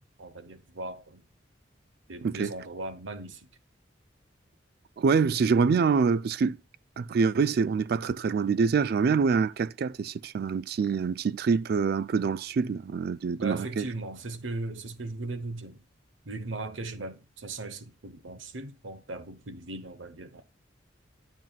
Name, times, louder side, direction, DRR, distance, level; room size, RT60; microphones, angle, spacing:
voice 1, 0.2-1.2 2.1-3.5 13.3-15.8 16.3-20.4, right 2 dB, 85° right, 1.0 m, -38 dB
voice 2, 2.2-2.5 5.0-6.6 7.0-13.9, right 5 dB, 55° right, 0.3 m, -25 dB
10.5 x 7.4 x 2.4 m
head